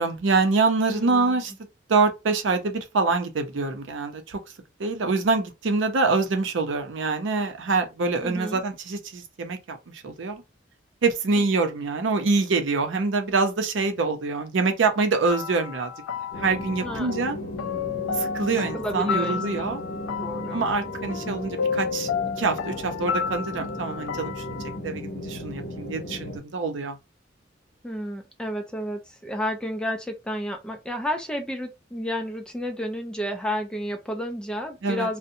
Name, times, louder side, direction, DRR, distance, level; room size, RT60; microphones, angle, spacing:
voice 1, 0.0-1.5 1.9-4.4 4.8-10.4 11.0-15.9 16.4-17.4 18.2-19.8 20.5-22.1 22.4-24.3 24.8-27.0 34.8-35.1, right 3 dB, 75° right, 0.6 m, -25 dB
voice 2, 0.9-1.4 8.2-8.6 11.4-11.5 16.8-17.1 18.5-19.8 20.2-20.6 21.1-21.5 27.8-35.2, equal, 5° left, 0.4 m, -31 dB
sound 1, 15.3-24.8, left 6 dB, 80° left, 0.3 m, -32 dB
sound 2, 16.3-26.4, left 1 dB, 60° left, 0.8 m, -36 dB
2.6 x 2.1 x 2.6 m
head